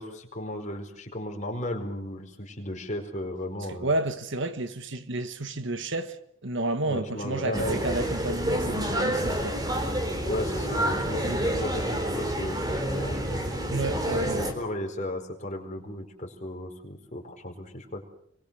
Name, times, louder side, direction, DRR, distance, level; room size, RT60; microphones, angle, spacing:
voice 1, 0.0-3.9 6.9-7.9 10.2-13.4 14.1-18.0, left 1 dB, 35° left, 4.8 m, -35 dB
voice 2, 3.7-9.6 11.2-11.4 13.7-14.4, right 2 dB, 55° right, 1.5 m, -31 dB
sound 1, 7.5-14.5, right 1 dB, 20° right, 3.7 m, -28 dB
29.5 x 23.5 x 6.9 m
head